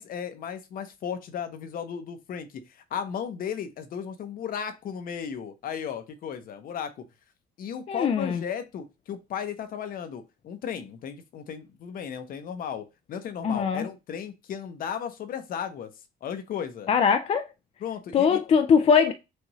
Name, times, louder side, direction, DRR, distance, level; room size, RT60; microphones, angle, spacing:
voice 1, 0.0-7.1 7.6-15.9 16.2-16.9 17.8-18.4, left 8 dB, 60° left, 0.8 m, -35 dB
voice 2, 7.9-8.4 13.4-13.8 16.9-17.5 18.1-19.1, left 6 dB, 35° left, 0.4 m, -21 dB
6.3 x 2.6 x 3.1 m
cardioid pair, 110°, 17 cm